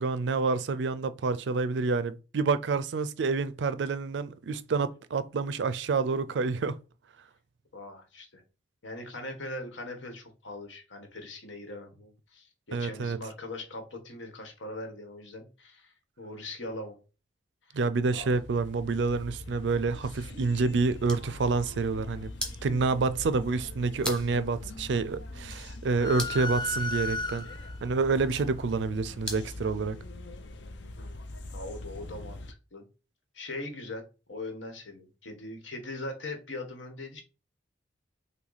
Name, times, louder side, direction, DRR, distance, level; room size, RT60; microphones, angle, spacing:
voice 1, 0.0-6.8 12.7-13.2 17.7-22.3 22.6-27.5 27.8-30.0, right 4 dB, 65° right, 0.4 m, -28 dB
voice 2, 7.7-8.4 8.8-17.0 17.7-17.8 18.1-18.4 31.0-31.1 31.5-32.4 32.7-32.8 33.3-34.0 34.3-37.2, left 2 dB, 85° left, 1.3 m, -41 dB
sound 1, 17.8-32.5, left 2 dB, 65° left, 0.6 m, -43 dB
sound 2, 20.8-29.6, equal, 5° left, 0.9 m, -44 dB
sound 3, 26.0-27.8, left 3 dB, 25° left, 0.4 m, -33 dB
5.8 x 2.2 x 4.0 m
head